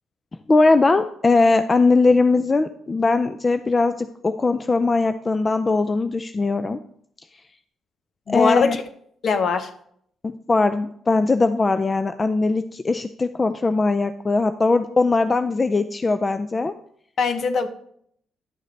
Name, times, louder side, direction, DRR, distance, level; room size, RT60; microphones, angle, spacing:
voice 1, 0.5-6.8 8.3-8.8 10.2-16.7, left 3 dB, 30° left, 10 dB, 0.3 m, -20 dB
voice 2, 8.3-8.8 9.2-9.7 17.2-17.7, left 5 dB, 55° left, 9 dB, 0.8 m, -21 dB
11.0 x 6.5 x 3.2 m, 0.66 s
cardioid pair, 85°, 0 cm